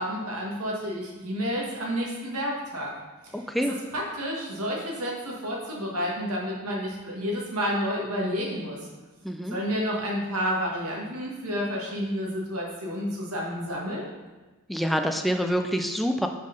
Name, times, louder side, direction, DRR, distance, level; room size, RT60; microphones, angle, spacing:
voice 1, 0.0-2.9 3.2-3.4 3.9-8.8 9.5-14.1, equal, 80° right, -2 dB, 1.7 m, -30 dB
voice 2, 3.3-3.7 9.2-9.6 14.7-16.3, equal, ahead, 4 dB, 0.3 m, -26 dB
5.5 x 5.4 x 5.2 m, 1.2 s
head